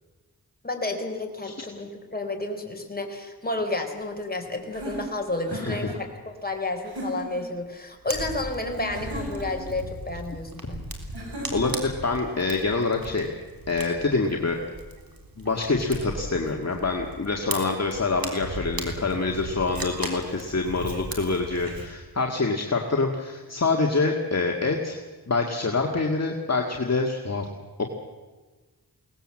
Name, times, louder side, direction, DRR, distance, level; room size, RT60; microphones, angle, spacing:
voice 1, 0.6-10.8, left 2 dB, 25° left, 3 dB, 3.9 m, -31 dB
sound 1, 4.7-6.0 6.8-7.5 8.9-9.7 11.1-11.9, right 1 dB, 80° right, 6.5 m, -36 dB
voice 2, 5.5-5.9 11.5-13.3 13.7-14.6 15.4-25.0 25.3-27.5, left 3 dB, 40° left, 1 dB, 2.1 m, -26 dB
Fire, 8.1-21.9, right 2 dB, 60° right, 3.7 m, -38 dB
22.5 x 18.5 x 7.7 m, 1.3 s
wide cardioid pair, 70°, 38 cm